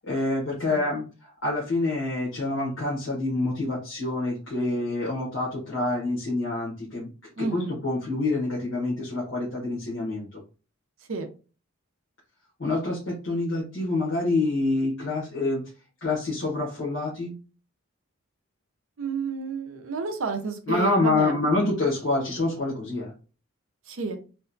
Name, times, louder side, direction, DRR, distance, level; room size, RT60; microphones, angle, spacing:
voice 1, 0.0-7.1 7.4-10.4 12.6-15.7 16.0-17.4 20.7-23.1, left 2 dB, 60° left, -5 dB, 0.9 m, -27 dB
voice 2, 7.4-7.8 11.1-11.3 19.0-21.4 23.9-24.2, right 4 dB, 70° right, 6 dB, 0.5 m, -31 dB
2.8 x 2.2 x 2.5 m, 0.35 s
head